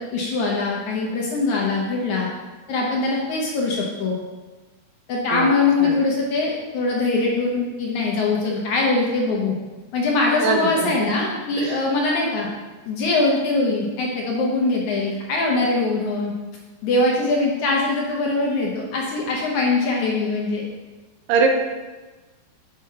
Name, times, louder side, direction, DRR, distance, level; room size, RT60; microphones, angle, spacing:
voice 1, 0.0-2.3 2.7-4.2 5.1-9.6 9.9-12.5 12.9-16.3 16.8-20.6, left 3 dB, 70° left, -2 dB, 2.0 m, -22 dB
voice 2, 10.4-11.1 11.6-11.8 21.3-21.5, right 5 dB, 75° right, 3 dB, 2.4 m, -22 dB
6.5 x 4.9 x 5.6 m, 1.2 s
omnidirectional pair, 4.1 m